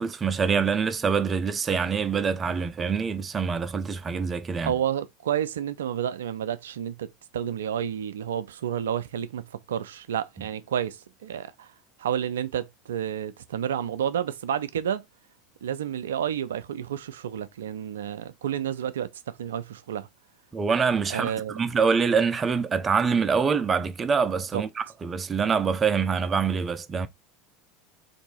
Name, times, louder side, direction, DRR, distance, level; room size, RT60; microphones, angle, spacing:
voice 1, 0.0-4.8 20.5-27.1, right 5 dB, 25° right, 0.5 m, -25 dB
voice 2, 4.6-11.7 12.0-15.1 15.6-20.1 21.1-21.6 24.5-24.6, right 9 dB, 75° right, 0.4 m, -30 dB
2.7 x 2.6 x 4.2 m
hypercardioid pair, 80°, 0 cm